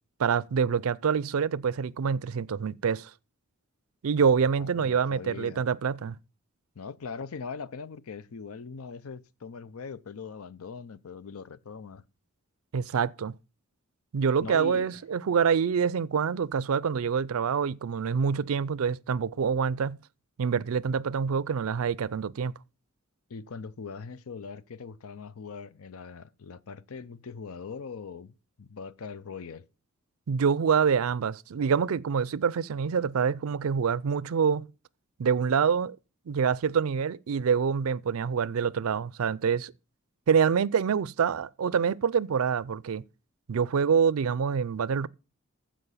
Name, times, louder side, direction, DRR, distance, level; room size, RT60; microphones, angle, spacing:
voice 1, 0.2-3.1 4.0-6.1 12.7-13.3 14.1-20.0 20.4-22.5 30.3-34.7 35.2-36.0 36.3-39.7 40.3-43.0 43.5-45.1, right 6 dB, 80° right, 0.4 m, -26 dB
voice 2, 4.6-5.6 6.8-12.0 14.4-15.0 23.3-29.7, left 5 dB, 80° left, 0.6 m, -41 dB
14.5 x 5.2 x 5.6 m
head